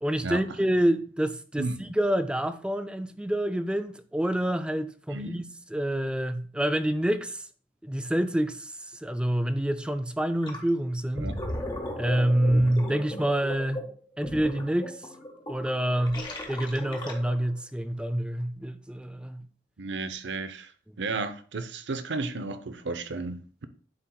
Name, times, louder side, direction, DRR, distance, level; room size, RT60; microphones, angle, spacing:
voice 1, 0.0-5.4 5.7-7.4 7.8-8.7 9.0-11.3 12.0-13.9 14.2-15.0 15.5-19.4, right 1 dB, 5° right, 0.4 m, -27 dB
Gurgling, 10.4-10.7 11.0-17.5, left 1 dB, 25° left, 1.2 m, -36 dB
voice 2, 19.8-20.7 21.0-23.7, right 3 dB, 75° right, 0.6 m, -33 dB
10.5 x 4.4 x 2.3 m
head